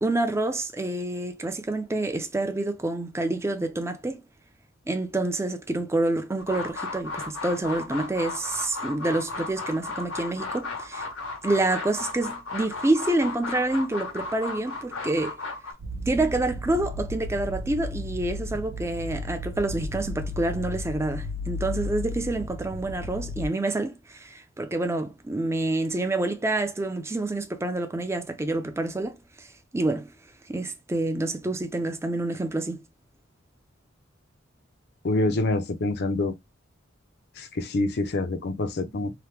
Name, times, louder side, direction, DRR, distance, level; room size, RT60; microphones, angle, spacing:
voice 1, 0.0-4.2 4.9-11.1 11.4-15.4 16.1-29.5 29.7-30.1 30.5-32.8, right 2 dB, 15° right, 0.4 m, -27 dB
sound 1, 6.4-15.7, left 3 dB, 85° left, 1.1 m, -35 dB
sound 2, 15.8-23.5, left 2 dB, 75° right, 0.5 m, -34 dB
voice 2, 35.0-36.3 37.4-39.1, left 2 dB, 55° left, 0.5 m, -26 dB
2.9 x 2.1 x 3.2 m
head